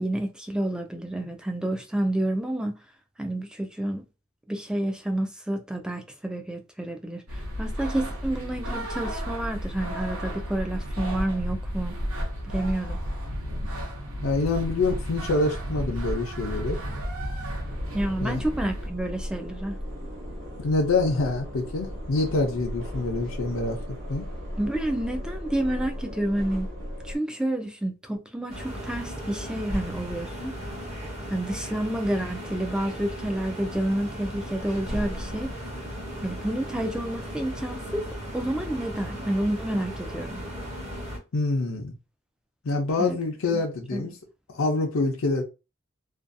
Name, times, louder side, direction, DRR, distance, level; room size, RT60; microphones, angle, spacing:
voice 1, 0.0-2.7 3.2-4.0 4.5-11.9 12.4-13.0 17.9-19.8 24.6-26.7 27.0-30.6 31.3-35.6 36.2-38.0 38.3-40.4 43.0-43.2 43.5-43.6 43.9-44.1, right 1 dB, 5° right, 0.3 m, -29 dB
sound 1, 7.3-18.9, equal, 85° right, 0.8 m, -32 dB
voice 2, 14.2-16.8 18.2-18.4 20.6-23.8 24.1-24.3 41.3-41.9 42.6-44.2 44.5-45.4, left 3 dB, 80° left, 0.5 m, -26 dB
sound 2, 17.6-27.2, equal, 60° right, 1.0 m, -36 dB
sound 3, 28.5-41.2, equal, 30° right, 0.8 m, -36 dB
2.5 x 2.3 x 2.5 m
head